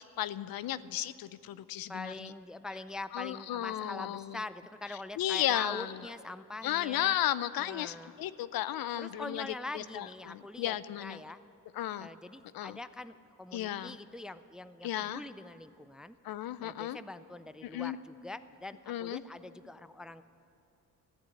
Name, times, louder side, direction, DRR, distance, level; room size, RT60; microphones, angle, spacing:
voice 1, 0.0-2.3 3.1-4.4 5.2-6.0 6.6-9.5 9.7-11.2 11.7-12.1 12.5-12.8 13.5-14.0 14.8-15.2 16.2-17.0 17.6-18.0 18.9-19.2, left 12 dB, 75° left, 16 dB, 0.5 m, -34 dB
voice 2, 1.9-7.1 7.6-8.1 9.0-11.4 12.0-16.2 16.6-20.2, left 2 dB, ahead, 13 dB, 0.3 m, -44 dB
14.5 x 8.3 x 9.4 m, 2.7 s
cardioid pair, 70°, 36 cm